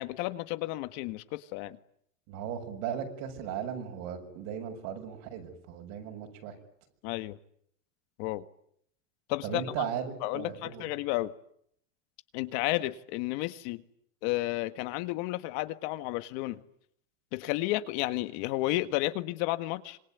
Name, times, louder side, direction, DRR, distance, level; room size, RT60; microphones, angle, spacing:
voice 1, 0.0-1.8 7.0-7.4 8.2-8.4 9.3-9.7 10.2-11.3 12.3-13.8 14.2-16.6 17.3-20.0, left 18 dB, 60° left, 1.7 m, -32 dB
voice 2, 2.3-6.5 9.4-10.9, right 8 dB, 60° right, 6.9 m, -37 dB
26.5 x 22.0 x 9.4 m
supercardioid pair, 145°, 38 cm